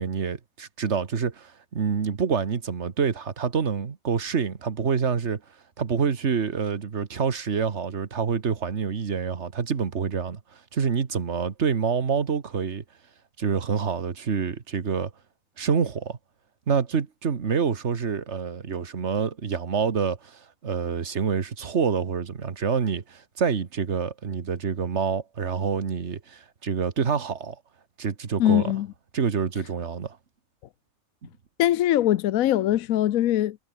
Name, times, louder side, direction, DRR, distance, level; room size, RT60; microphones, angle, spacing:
voice 1, 0.0-5.4 5.8-10.4 10.7-12.8 13.4-15.1 15.6-16.2 16.7-27.6 28.0-28.7 29.1-30.2, right 6 dB, 55° right, 1.7 m, -27 dB
voice 2, 28.4-28.9 31.6-33.6, left 13 dB, 80° left, 1.1 m, -21 dB
omnidirectional pair, 1.4 m